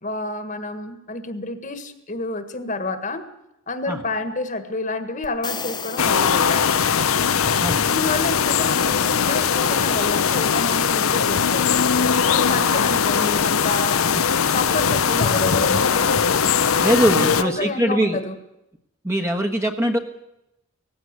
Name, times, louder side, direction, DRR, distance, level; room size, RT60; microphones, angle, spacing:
voice 1, 0.0-3.2 3.7-6.7 7.9-11.9 12.3-14.0 14.5-16.1 17.1-18.4, left 2 dB, 40° left, 10 dB, 1.6 m, -29 dB
sound 1, 5.2-7.3, left 6 dB, 20° left, 0.8 m, -35 dB
sound 2, 6.0-17.4, left 6 dB, 85° left, 0.8 m, -20 dB
voice 2, 16.8-18.2 19.0-20.0, right 1 dB, 15° right, 3 dB, 1.3 m, -21 dB
18.5 x 16.0 x 9.7 m, 0.87 s
head